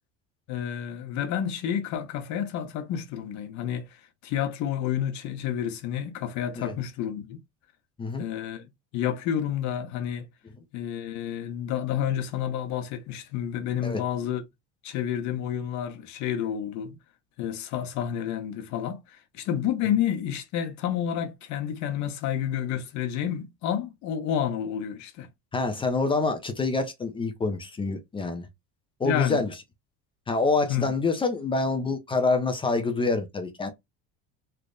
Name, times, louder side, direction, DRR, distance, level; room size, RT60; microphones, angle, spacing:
voice 1, 0.5-3.9 4.2-7.4 8.2-8.6 8.9-10.3 10.7-14.4 14.8-16.9 17.4-19.0 19.3-25.3 29.0-29.4 30.7-30.9, left 9 dB, 60° left, 0.8 m, -30 dB
voice 2, 25.5-28.5 29.0-29.5 30.3-33.7, left 3 dB, 15° left, 0.5 m, -26 dB
3.3 x 2.0 x 3.7 m
cardioid pair, 155°, 33 cm